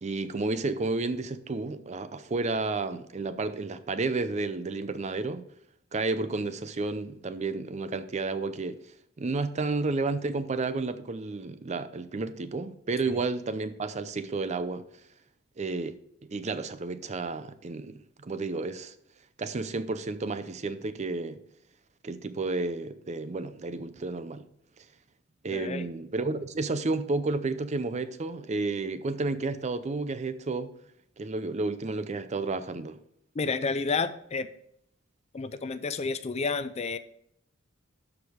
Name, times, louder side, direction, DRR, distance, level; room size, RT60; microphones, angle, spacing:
voice 1, 0.0-5.4 5.9-8.8 9.2-14.8 15.6-16.0 16.2-18.9 19.4-21.4 22.0-24.5 25.4-30.7 31.2-33.0, right 3 dB, 35° right, 0.5 m, -31 dB
voice 2, 25.5-25.9 33.3-34.5 35.3-37.0, left 4 dB, 30° left, 0.4 m, -30 dB
12.5 x 4.9 x 3.6 m
head